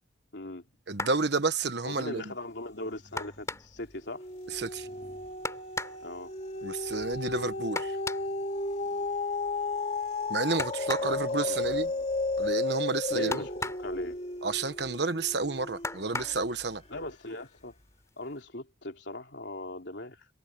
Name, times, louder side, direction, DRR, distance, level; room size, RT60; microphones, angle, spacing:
voice 1, 0.3-0.7 1.8-4.3 6.0-6.3 11.0-12.0 13.1-14.2 16.9-17.7 18.2-20.3, left 1 dB, 65° left, 3.4 m, -40 dB
sound 1, 0.9-1.3 3.1-3.9 5.4-6.0 7.7-8.3 10.6-11.2 13.3-13.9 15.8-16.4 17.5-17.6 18.1-18.3, left 2 dB, 15° left, 4.6 m, -36 dB
voice 2, 0.9-2.3 4.5-4.9 6.6-8.0 10.3-11.9 12.4-13.5 14.4-16.8, right 3 dB, 60° right, 1.3 m, -30 dB
sound 2, 3.1-3.6 4.0-16.4 17.0-17.1, left 3 dB, 35° left, 3.0 m, -34 dB
head